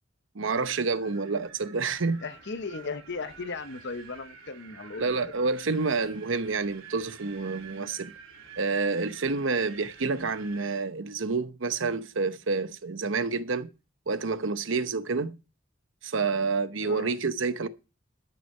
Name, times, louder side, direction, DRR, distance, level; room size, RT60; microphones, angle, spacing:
voice 1, 0.3-2.2 5.0-8.1 8.6-13.7 14.1-15.3 16.0-17.7, right 4 dB, 65° right, 0.9 m, -28 dB
Wind, 0.9-10.8, right 6 dB, 85° right, 3.6 m, -49 dB
voice 2, 2.2-5.0 16.8-17.2, left 4 dB, 60° left, 0.9 m, -36 dB
12.0 x 6.1 x 5.4 m
head